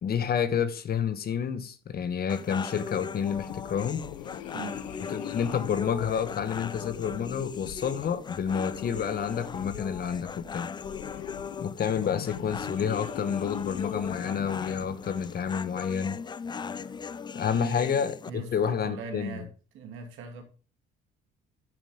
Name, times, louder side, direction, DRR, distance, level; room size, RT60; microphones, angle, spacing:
voice 1, 0.0-4.1 5.1-10.7 11.6-16.2 17.3-19.4, left 7 dB, 50° left, 1.2 m, -29 dB
sound 1, 2.3-18.3, left 6 dB, 20° left, 0.4 m, -39 dB
sound 2, 3.2-15.7, left 15 dB, 85° left, 0.6 m, -43 dB
voice 2, 4.5-4.8 17.5-17.9 18.3-19.5 19.7-20.4, right 4 dB, 75° right, 2.5 m, -40 dB
9.9 x 7.4 x 3.7 m
supercardioid pair, 75°, 21 cm